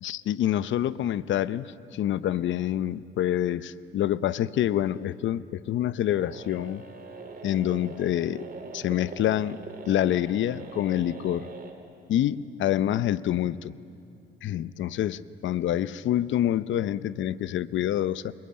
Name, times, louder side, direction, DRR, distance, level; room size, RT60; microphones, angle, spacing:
voice 1, 0.0-6.8 7.4-8.4 8.7-9.6 9.9-11.5 12.1-13.8 14.4-18.3, left 11 dB, 70° left, 17 dB, 0.7 m, -27 dB
sound 1, 6.2-11.7, right 4 dB, 50° right, 3.3 m, -42 dB
28.5 x 20.5 x 8.8 m, 2.7 s
cardioid pair, 90°, 20 cm